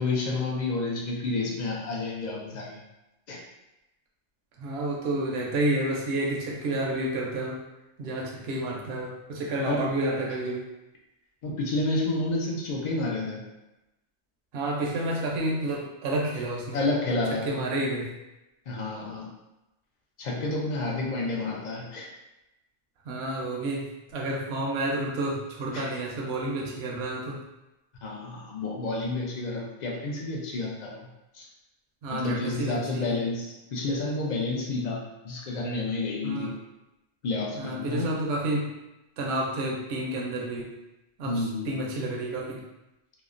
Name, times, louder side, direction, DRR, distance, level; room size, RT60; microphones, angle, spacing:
voice 1, 0.0-2.8 3.3-3.4 9.7-9.9 11.4-13.4 16.7-17.6 18.7-19.3 20.2-22.1 25.7-26.0 28.0-31.1 31.3-31.5 32.1-36.6 37.2-38.2 41.2-41.8, left 2 dB, 60° left, -2 dB, 0.4 m, -30 dB
voice 2, 4.6-7.6 8.0-10.7 14.5-16.8 17.5-18.1 23.1-27.4 32.0-33.2 36.2-36.5 37.6-38.7 39.2-40.8 41.2-42.6, right 1 dB, 70° right, -2 dB, 0.8 m, -30 dB
2.9 x 2.0 x 2.4 m, 0.96 s
omnidirectional pair, 1.2 m